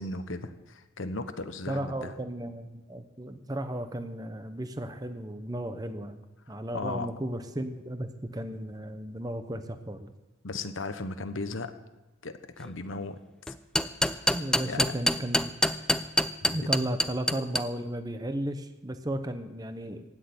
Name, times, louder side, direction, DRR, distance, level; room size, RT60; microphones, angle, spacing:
voice 1, 0.0-2.1 6.7-7.1 10.4-11.7 12.2-13.2 14.6-14.8 16.4-16.6, left 3 dB, 75° left, 10 dB, 1.1 m, -36 dB
voice 2, 1.7-10.1 14.3-15.5 16.5-20.0, right 1 dB, 20° right, 8 dB, 0.9 m, -34 dB
sound 1, 13.5-17.6, left 1 dB, 5° left, 0.4 m, -25 dB
16.0 x 6.5 x 9.7 m, 1.1 s
head